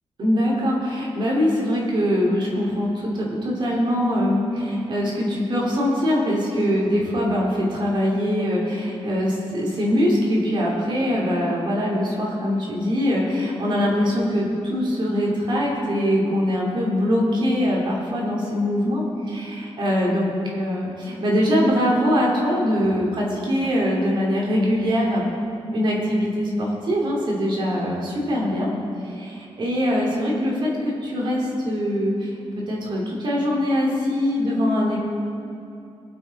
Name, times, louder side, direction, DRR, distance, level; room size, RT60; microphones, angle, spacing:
voice 1, 0.2-25.2 25.7-28.7 29.1-32.3 32.7-35.0, equal, 50° right, -3 dB, 2.5 m, -22 dB
20.5 x 7.6 x 4.0 m, 2.7 s
wide cardioid pair, 180°, 10 cm